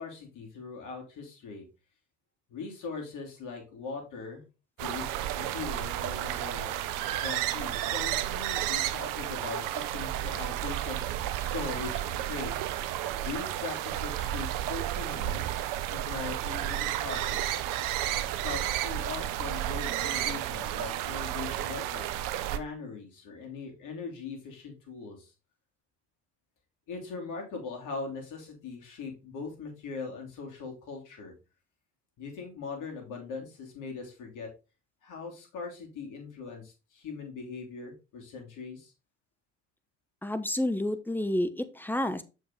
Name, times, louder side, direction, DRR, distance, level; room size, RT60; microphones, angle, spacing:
voice 1, 0.0-1.6 2.5-4.4 4.8-6.8 7.1-12.6 13.2-15.6 15.9-17.6 18.2-25.3 26.9-31.3 32.2-34.5 35.0-38.9, left 4 dB, 60° left, 1 dB, 3.0 m, -40 dB
sound 1, 4.8-22.6, right 12 dB, 60° right, 0.8 m, -32 dB
voice 2, 40.2-42.2, left 1 dB, 5° left, 10 dB, 0.9 m, -29 dB
6.6 x 5.4 x 3.7 m, 0.30 s
hypercardioid pair, 65°, 35 cm